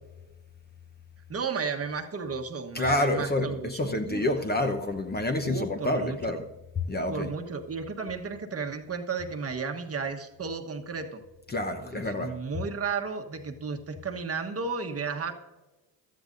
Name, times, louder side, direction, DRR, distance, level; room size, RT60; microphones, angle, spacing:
voice 1, 1.3-4.3 5.4-6.4 7.1-11.2 11.8-15.3, right 5 dB, 30° right, 1.3 m, -33 dB
voice 2, 2.7-6.4 6.9-7.3 11.5-12.4, left 1 dB, 20° left, 1.0 m, -28 dB
15.0 x 12.5 x 2.6 m
supercardioid pair, 85°, 44 cm